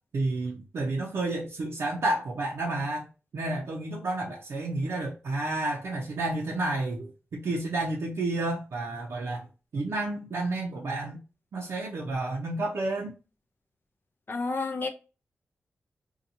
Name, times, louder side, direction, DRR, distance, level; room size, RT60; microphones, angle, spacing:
voice 1, 0.1-3.1 3.3-9.5 9.7-11.2 11.5-13.2, right 2 dB, 75° right, 0.6 m, -30 dB
voice 2, 14.3-14.9, left 3 dB, 50° left, 0.5 m, -30 dB
2.8 x 2.3 x 2.6 m
cardioid pair, 65°, 5 cm